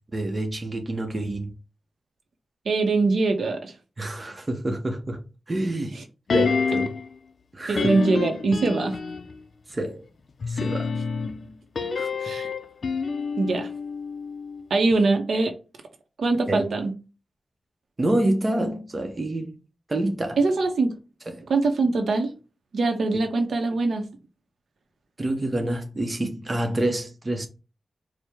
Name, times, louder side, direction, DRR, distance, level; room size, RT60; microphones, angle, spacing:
voice 1, 0.1-1.5 4.0-5.2 5.5-6.0 6.3-6.9 7.5-7.9 9.7-10.0 10.5-10.9 12.0-12.1 16.5-16.7 18.0-19.6 19.9-20.4 21.3-21.5 25.2-27.5, right 1 dB, 25° right, 0.7 m, -27 dB
voice 2, 2.7-3.7 7.7-9.0 12.2-12.5 13.4-13.7 14.7-15.5 16.2-16.9 20.4-21.0 21.5-22.3 22.7-24.1, right 3 dB, 80° right, 0.7 m, -22 dB
sound 1, 6.3-7.1 7.7-9.4 10.4-14.6 14.9-15.0, left 5 dB, 60° left, 0.4 m, -28 dB
4.6 x 2.1 x 3.4 m
wide cardioid pair, 135°, 0 cm